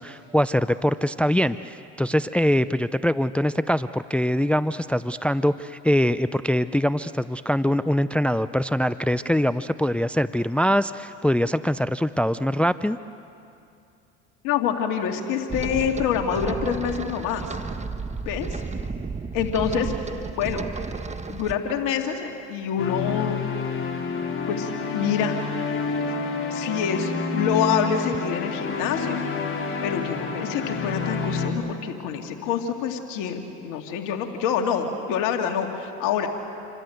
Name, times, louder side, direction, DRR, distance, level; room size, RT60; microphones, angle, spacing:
voice 1, 0.0-13.0, equal, 5° left, 14 dB, 0.5 m, -23 dB
voice 2, 14.4-17.5 18.2-18.6 19.3-20.7 21.3-23.4 24.5-25.4 26.5-29.2 29.8-36.3, left 7 dB, 70° left, 4 dB, 2.5 m, -26 dB
sound 1, 15.5-21.5, right 4 dB, 20° right, 1.5 m, -32 dB
sound 2, 22.8-31.5, left 4 dB, 40° left, 4.0 m, -28 dB
28.0 x 25.0 x 8.0 m, 2.6 s
hypercardioid pair, 75°, 32 cm